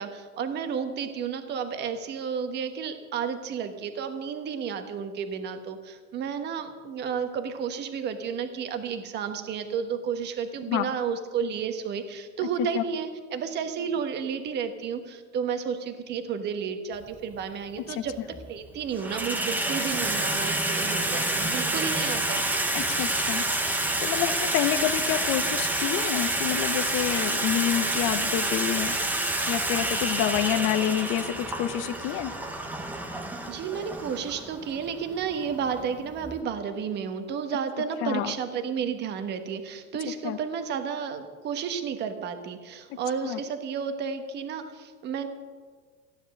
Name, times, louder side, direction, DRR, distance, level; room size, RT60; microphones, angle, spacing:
voice 1, 0.0-18.2 18.5-22.4 33.5-45.3, right 7 dB, 25° right, 8 dB, 1.2 m, -32 dB
Water tap faucet / Sink (filling or washing), 17.0-17.2 18.1-18.5 18.8-36.4, right 1 dB, 5° right, 0.9 m, -28 dB
voice 2, 22.7-29.0 29.5-32.3 38.0-38.3 40.2-40.4 42.9-43.4, left 11 dB, 35° left, 12 dB, 0.7 m, -28 dB
15.0 x 10.0 x 6.4 m, 1.5 s
supercardioid pair, 150°, 37 cm